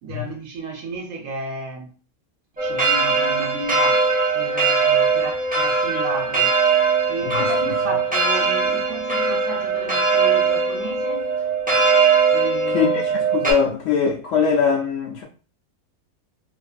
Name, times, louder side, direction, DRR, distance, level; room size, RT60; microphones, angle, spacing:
voice 1, 0.0-1.9 2.6-6.6 7.1-11.3 12.3-13.1, right 3 dB, 65° right, 0.9 m, -33 dB
sound 1, 2.6-13.5, right 4 dB, 15° right, 0.3 m, -20 dB
voice 2, 12.7-13.0 13.3-15.2, left 6 dB, 70° left, 0.8 m, -21 dB
2.6 x 2.5 x 2.3 m
omnidirectional pair, 1.6 m